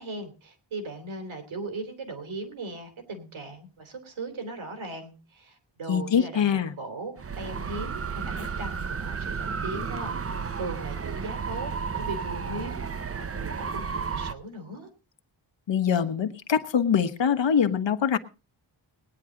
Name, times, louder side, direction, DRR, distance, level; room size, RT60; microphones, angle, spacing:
voice 1, 0.0-12.8 13.1-14.9, right 2 dB, 90° right, 6 dB, 3.4 m, -38 dB
voice 2, 5.9-6.7 15.7-18.2, left 7 dB, 70° left, 9 dB, 1.2 m, -24 dB
sound 1, 7.2-14.3, right 5 dB, 30° right, 0.7 m, -32 dB
20.0 x 9.9 x 3.8 m, 0.32 s
wide cardioid pair, 100°, 47 cm